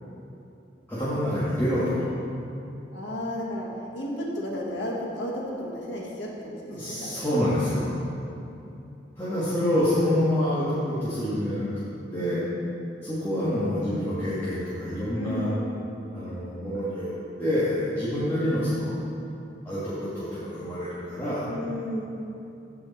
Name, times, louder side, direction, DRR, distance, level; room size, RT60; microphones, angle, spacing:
voice 1, 0.9-2.1 6.7-8.0 9.2-11.7 12.1-12.4 13.0-15.5 16.1-17.1 17.4-19.0 19.6-21.5, left 1 dB, 15° left, -13 dB, 1.7 m, -27 dB
voice 2, 2.9-3.7 3.9-7.2 15.1-15.6 21.5-22.1, equal, 80° left, -3 dB, 1.6 m, -33 dB
14.0 x 5.0 x 4.2 m, 2.7 s
head